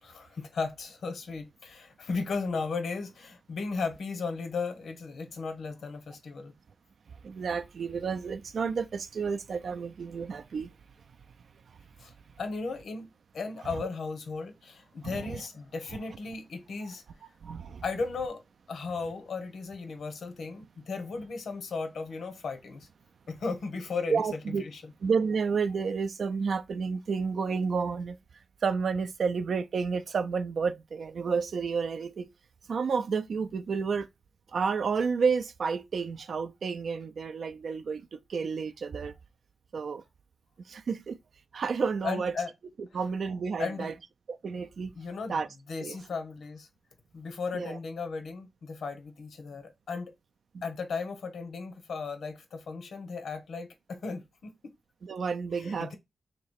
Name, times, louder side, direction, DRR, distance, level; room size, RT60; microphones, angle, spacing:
voice 1, 0.0-6.5 12.0-13.1 13.3-17.0 17.8-18.4 18.7-22.9 23.3-24.9 42.0-42.5 43.6-43.9 45.0-45.4 45.7-46.7 47.1-50.1 50.6-54.7 55.5-55.9, left 4 dB, 80° left, 0.8 m, -36 dB
voice 2, 7.2-10.7 12.0-12.1 15.0-15.4 16.8-16.9 17.4-17.8 24.1-24.6 25.0-28.2 28.6-32.3 32.7-34.1 34.5-39.1 39.7-40.0 40.7-41.2 41.5-42.3 42.9-43.9 44.3-44.9 45.3-45.5 45.8-46.0 47.5-47.8 55.0-55.9, right 5 dB, 65° right, 0.4 m, -30 dB
3.1 x 2.9 x 4.5 m
wide cardioid pair, 155°, 0 cm